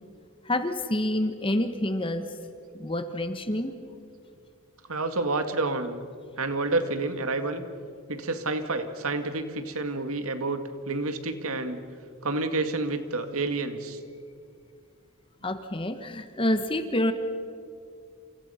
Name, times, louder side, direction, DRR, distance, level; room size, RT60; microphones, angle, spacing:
voice 1, 0.4-2.3 2.7-3.8 15.4-17.1, left 1 dB, 25° left, 9 dB, 1.2 m, -28 dB
voice 2, 4.9-6.0 6.4-7.6 8.1-11.8 12.2-14.0, right 2 dB, 75° right, 8 dB, 2.1 m, -29 dB
28.5 x 28.0 x 5.7 m, 2.3 s
head